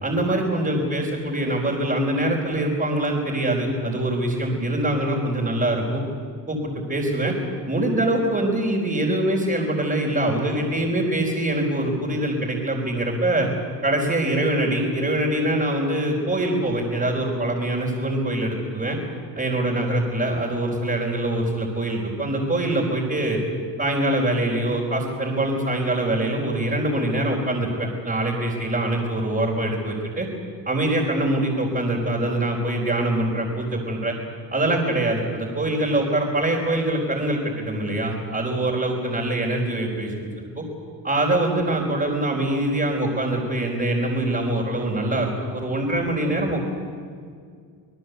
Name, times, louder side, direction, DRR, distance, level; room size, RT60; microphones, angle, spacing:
voice 1, 0.0-6.0 6.5-7.3 7.7-13.5 13.8-19.0 19.4-23.4 23.8-30.3 30.6-34.2 34.5-40.6 41.0-46.7, right 1 dB, 20° right, -4 dB, 4.5 m, -24 dB
26.0 x 19.0 x 8.2 m, 2.2 s
cardioid pair, 105°, 44 cm